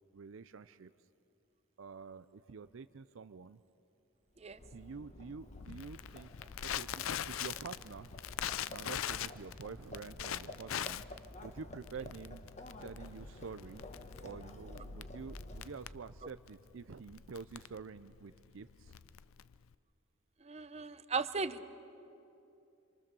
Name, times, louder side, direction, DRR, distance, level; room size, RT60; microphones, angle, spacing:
voice 1, 0.1-0.9 1.8-3.6 4.7-6.3 6.6-8.1 8.7-11.0 11.4-12.4 12.8-13.8 14.2-18.9, right 5 dB, 70° right, 12 dB, 0.5 m, -48 dB
Livestock farm animals working animals, 4.4-16.0, left 1 dB, 35° left, 1.2 m, -51 dB
Crackle, 5.5-19.7, left 10 dB, 75° left, 0.5 m, -42 dB
voice 2, 20.4-21.6, right 4 dB, 30° right, 12 dB, 0.7 m, -37 dB
26.5 x 26.5 x 6.9 m, 2.8 s
head